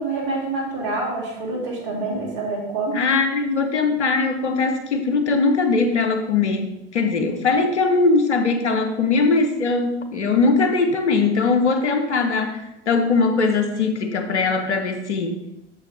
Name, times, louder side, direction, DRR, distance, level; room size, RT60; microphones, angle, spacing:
voice 1, 0.0-3.0, right 3 dB, 60° right, -1 dB, 2.8 m, -26 dB
voice 2, 2.9-6.7 6.9-12.6 12.9-15.4, left 4 dB, 90° left, 7 dB, 0.9 m, -20 dB
8.1 x 7.2 x 3.4 m, 0.89 s
hypercardioid pair, 70°, 34 cm